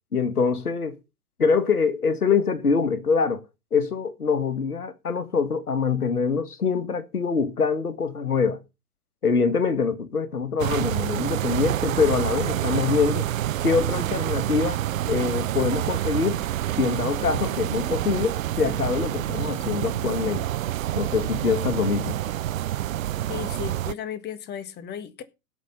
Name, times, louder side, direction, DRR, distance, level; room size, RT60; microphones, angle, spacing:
voice 1, 0.1-1.0 1.4-3.4 3.7-8.6 9.2-13.3 13.6-16.4 16.8-20.4 20.9-22.2, left 5 dB, 85° left, 1.7 m, -24 dB
sound 1, 10.6-23.9, right 13 dB, 65° right, 0.6 m, -27 dB
voice 2, 23.3-25.2, left 9 dB, 20° left, 1.6 m, -35 dB
17.0 x 6.2 x 5.5 m
figure-of-eight pair, 105°, 44 cm